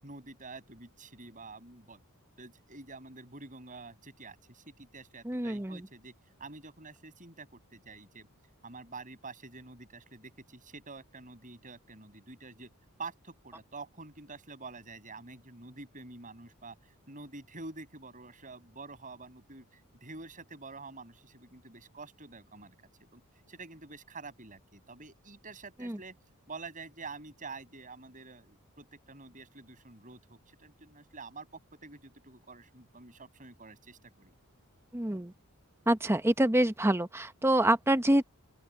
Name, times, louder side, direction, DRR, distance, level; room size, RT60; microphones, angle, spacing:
voice 1, 0.0-2.0 2.4-6.1 6.4-8.3 8.6-12.7 13.0-16.8 17.1-22.7 23.0-23.2 23.5-26.2 26.5-34.3, right 3 dB, 35° right, 6.0 m, -48 dB
voice 2, 5.3-5.8 25.8-26.0 34.9-35.3 35.9-38.2, right 1 dB, 10° right, 0.9 m, -26 dB
open air
head